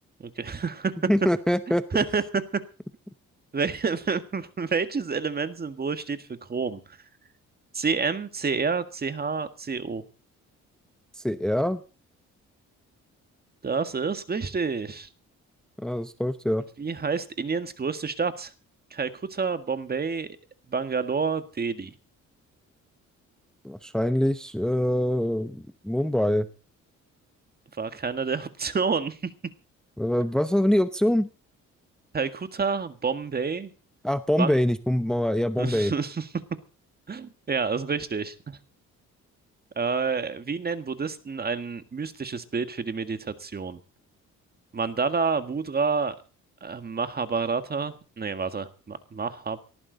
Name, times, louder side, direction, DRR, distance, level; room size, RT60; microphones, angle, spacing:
voice 1, 0.4-1.0 1.9-2.4 3.5-7.0 7.7-10.0 13.6-15.1 16.8-18.5 18.9-20.3 20.7-21.9 27.8-29.5 32.1-33.7 34.4-34.6 35.6-36.3 37.1-38.6 39.7-43.8 44.7-46.2 46.6-49.6, right 5 dB, 30° right, 10 dB, 1.7 m, -29 dB
voice 2, 1.1-1.8 11.2-11.8 15.8-16.6 23.6-26.5 30.0-31.3 34.0-35.9, equal, ahead, 11 dB, 0.9 m, -24 dB
18.5 x 14.0 x 4.0 m, 0.36 s
cardioid pair, 90°, 30 cm